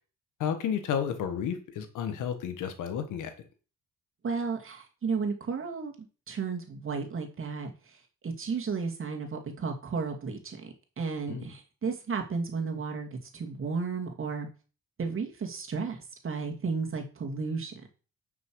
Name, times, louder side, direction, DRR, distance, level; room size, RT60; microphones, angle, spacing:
voice 1, 0.4-3.3 11.3-11.5, left 8 dB, 85° left, 8 dB, 1.6 m, -32 dB
voice 2, 4.2-5.9 6.3-7.7 8.2-10.7 11.0-14.5 15.0-16.0 16.2-17.7, right 5 dB, 45° right, 2 dB, 2.4 m, -33 dB
9.7 x 6.1 x 4.8 m, 0.36 s
cardioid pair, 90°, 30 cm